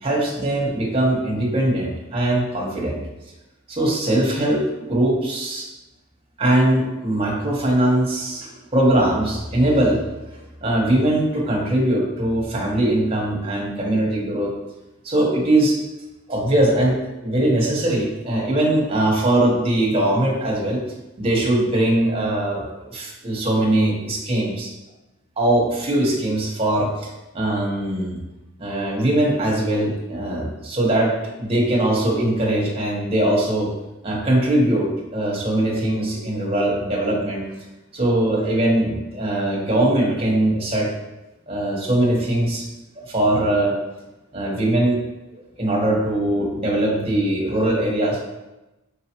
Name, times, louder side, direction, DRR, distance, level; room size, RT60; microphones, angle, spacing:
voice 1, 0.0-3.0 3.7-5.7 6.4-10.0 10.3-14.5 15.0-15.8 16.3-20.8 21.2-24.7 25.4-27.1 27.3-28.2 28.6-31.1 31.4-33.7 34.0-37.4 37.9-40.9 41.5-42.6 42.9-43.7 44.3-45.0 45.3-48.2, right 1 dB, 30° right, -2 dB, 1.0 m, -21 dB
4.7 x 3.8 x 2.9 m, 1.0 s
head